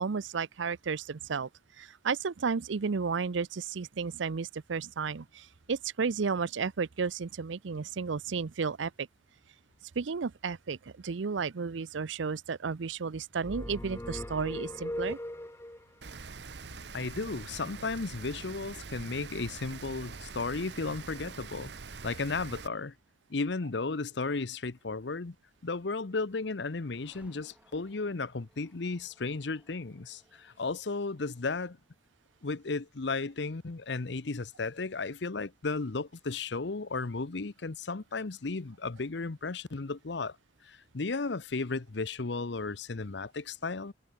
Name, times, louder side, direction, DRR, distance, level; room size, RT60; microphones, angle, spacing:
voice 1, 0.0-1.5 1.8-9.1 10.0-15.2, right 5 dB, 80° right, 0.6 m, -33 dB
sound 1, 13.4-15.9, left 1 dB, 15° left, 1.0 m, -38 dB
Rain, 16.0-22.7, right 4 dB, 65° right, 1.0 m, -44 dB
voice 2, 16.9-21.7 22.0-22.9 23.3-25.4 25.6-31.8 32.4-40.4 40.6-43.9, left 3 dB, 70° left, 0.8 m, -34 dB
sound 2, 26.1-35.6, equal, 5° right, 4.9 m, -68 dB
head